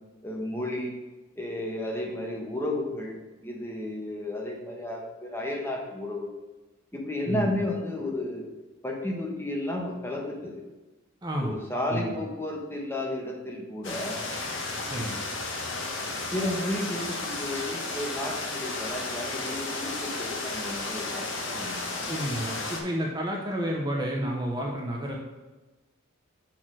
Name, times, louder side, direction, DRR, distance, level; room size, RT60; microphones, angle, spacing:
voice 1, 0.2-1.0 1.4-6.4 6.9-8.4 8.8-10.6 11.4-14.2 16.3-22.1, left 1 dB, 10° left, -1 dB, 1.1 m, -33 dB
voice 2, 7.3-7.6 11.2-11.5 11.9-12.1 14.9-15.3 22.1-25.2, equal, 20° right, -1 dB, 0.8 m, -30 dB
sound 1, 13.8-22.8, left 3 dB, 60° left, 1.2 m, -33 dB
6.0 x 4.4 x 6.2 m, 1.1 s
head